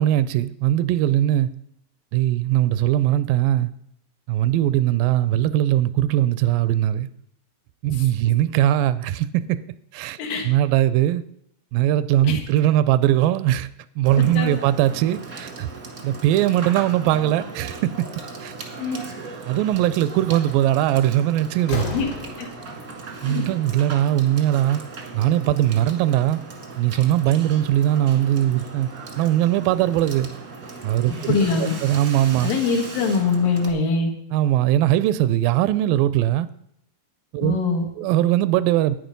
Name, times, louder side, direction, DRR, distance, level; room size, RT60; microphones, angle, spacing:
voice 1, 0.0-1.5 2.1-3.7 4.3-7.1 7.8-9.6 9.9-10.2 10.5-11.2 11.7-13.7 14.0-15.7 16.0-18.1 18.4-18.5 19.5-21.9 23.2-24.8 25.1-26.4 26.8-28.9 29.2-30.3 30.8-31.4 31.8-32.5 34.3-36.5 37.3-37.6 38.0-39.0, right 13 dB, 85° right, 2.3 m, -20 dB
Water / Water tap faucet / Sink (filling or washing), 14.0-33.7, right 4 dB, 50° right, 1.1 m, -38 dB
voice 2, 14.2-14.6 18.8-19.0 21.9-22.1 31.1-31.7 32.4-34.1 37.4-37.9, left 4 dB, 80° left, 3.4 m, -23 dB
Slam, 20.3-20.5 21.0-22.8, left 2 dB, 60° left, 3.7 m, -31 dB
10.5 x 9.3 x 5.3 m
omnidirectional pair, 4.0 m